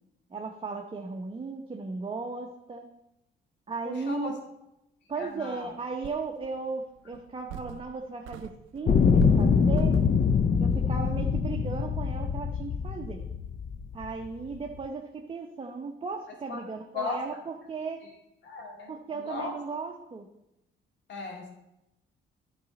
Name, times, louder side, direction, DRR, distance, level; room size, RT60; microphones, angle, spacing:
voice 1, 0.3-2.9 3.7-4.3 5.1-10.0 10.6-13.3 13.9-18.0 18.9-20.3, right 4 dB, 25° right, 2 dB, 0.8 m, -36 dB
voice 2, 3.8-4.3 5.2-5.7 16.5-16.6 16.9-17.2 18.0-18.1 18.4-19.5 21.1-21.5, left 3 dB, 65° left, 0 dB, 2.4 m, -36 dB
sound 1, 5.4-5.5 6.0-6.6 7.1-8.0 8.3-10.3, right 11 dB, 85° right, 0.4 m, -39 dB
sound 2, 8.9-14.1 14.8-14.9, left 6 dB, 40° left, 0.5 m, -24 dB
11.0 x 4.1 x 5.2 m, 0.89 s
cardioid pair, 90°, 20 cm